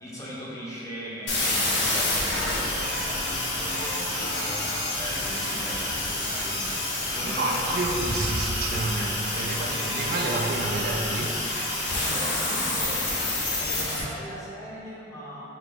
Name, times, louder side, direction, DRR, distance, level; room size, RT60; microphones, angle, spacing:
voice 1, 0.0-6.9 7.1-7.6 11.9-13.0 13.6-15.4, equal, 20° left, -8 dB, 0.8 m, -39 dB
Waves surf, 1.2-8.8, equal, 75° right, 0.9 m, -39 dB
sound 1, 1.3-14.0, left 2 dB, 90° left, 0.8 m, -28 dB
voice 2, 7.2-11.5, right 2 dB, 55° right, 1 dB, 0.3 m, -29 dB
3.6 x 3.0 x 3.5 m, 2.9 s
head